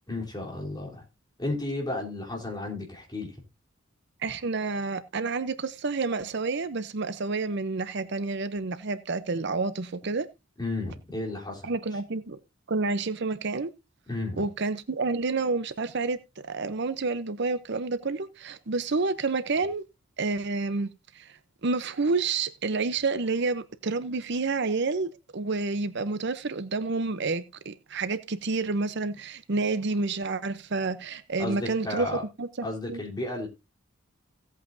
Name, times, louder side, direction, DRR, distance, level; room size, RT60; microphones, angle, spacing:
voice 1, 0.1-1.0 1.4-3.4 4.3-4.4 10.6-11.7 14.1-14.5 31.4-32.2 32.6-33.5, left 2 dB, 20° left, 3.5 m, -33 dB
voice 2, 4.2-10.3 11.6-12.4 12.7-13.7 14.4-19.8 20.2-32.1 32.4-33.0, right 3 dB, 55° right, 0.7 m, -29 dB
16.5 x 8.3 x 2.7 m
head